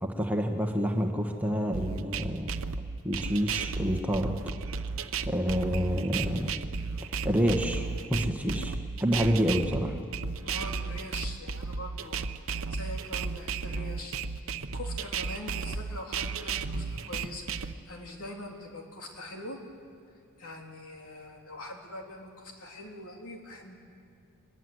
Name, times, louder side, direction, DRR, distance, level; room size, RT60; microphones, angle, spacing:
voice 1, 0.0-2.5 3.0-4.3 5.2-6.5 7.2-8.7 9.0-10.0, equal, 5° right, 3 dB, 1.4 m, -28 dB
sound 1, 1.7-17.7, right 5 dB, 70° right, 0.8 m, -34 dB
voice 2, 10.4-12.2 12.7-14.2 14.7-19.6 20.4-23.8, left 1 dB, 80° left, 1 dB, 3.4 m, -43 dB
23.5 x 21.0 x 7.9 m, 2.4 s
head